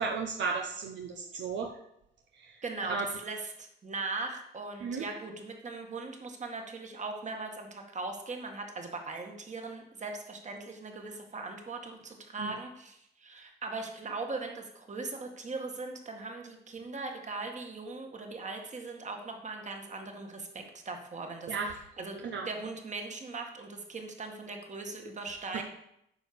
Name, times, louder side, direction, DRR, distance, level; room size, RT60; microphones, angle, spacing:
voice 1, 0.0-1.7 2.4-2.6 2.9-3.0 4.8-5.0 12.4-12.5 21.5-21.7 22.2-22.5, right 5 dB, 70° right, 2 dB, 1.1 m, -34 dB
voice 2, 2.6-21.5 22.0-22.2 22.4-25.6, right 3 dB, 35° right, 3 dB, 2.0 m, -39 dB
9.0 x 5.4 x 7.0 m, 0.78 s
cardioid pair, 90°, 20 cm